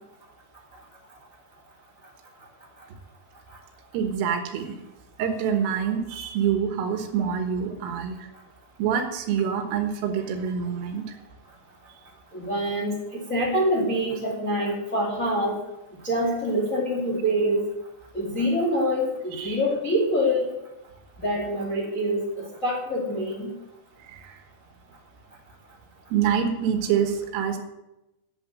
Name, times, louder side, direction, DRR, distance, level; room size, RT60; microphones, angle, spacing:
voice 1, 3.9-4.8 5.2-8.3 8.8-11.2 14.2-14.3 19.4-19.6 24.1-24.4 26.1-27.6, right 8 dB, 80° right, 6 dB, 3.9 m, -26 dB
voice 2, 12.3-15.5 16.0-17.6 18.1-20.5 21.2-23.5, equal, 30° left, -2 dB, 1.4 m, -25 dB
11.5 x 8.2 x 7.6 m, 0.96 s
omnidirectional pair, 5.9 m